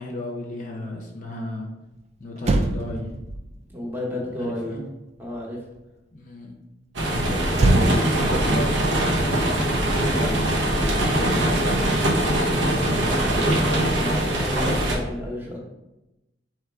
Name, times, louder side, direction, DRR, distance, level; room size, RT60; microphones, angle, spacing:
voice 1, 0.0-1.7 2.2-3.1 4.4-4.8 6.1-6.5 7.0-8.8 9.4-10.7 11.0-12.5 12.8-13.6, left 1 dB, 45° left, 0 dB, 0.6 m, -34 dB
Motor vehicle (road), 2.0-2.1 2.4-5.9 7.5-10.1 10.4-10.7, right 2 dB, 35° right, 0.3 m, -26 dB
voice 2, 3.7-4.8 5.2-5.6 7.6-8.0 14.0-15.6, left 1 dB, 10° right, -3 dB, 0.9 m, -31 dB
sound 1, 7.0-15.0, right 1 dB, 75° right, 0.9 m, -22 dB
3.6 x 3.1 x 4.6 m, 0.96 s
head